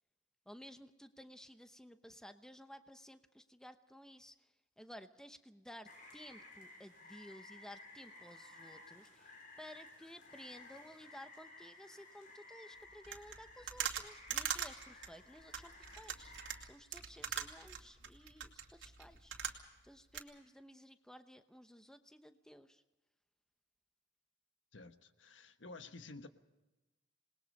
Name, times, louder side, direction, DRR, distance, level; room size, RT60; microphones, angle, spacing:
voice 1, 0.5-4.3 4.8-16.3 16.6-19.4 19.8-22.8, equal, 5° left, 0.9 m, -55 dB
Rain, 5.9-16.5, left 2 dB, 50° left, 6.4 m, -56 dB
sound 1, 13.0-19.9 20.1-20.2, right 8 dB, 80° right, 2.4 m, -42 dB
voice 2, 24.7-26.3, left 3 dB, 80° left, 1.3 m, -52 dB
27.0 x 20.0 x 5.4 m
head